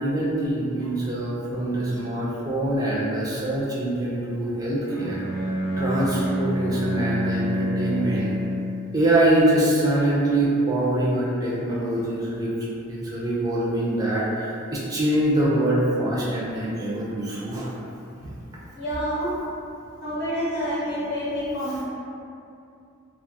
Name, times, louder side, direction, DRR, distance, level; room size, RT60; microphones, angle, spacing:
voice 1, 0.0-8.3 8.9-12.5 12.9-17.7 18.2-18.3 21.7-21.8, right 1 dB, 15° right, -7 dB, 0.4 m, -24 dB
Bowed string instrument, 4.8-8.9, equal, 90° left, 0.8 m, -27 dB
voice 2, 18.8-19.3 20.0-21.8, equal, 55° left, -9 dB, 0.8 m, -28 dB
2.4 x 2.3 x 2.6 m, 2.5 s
head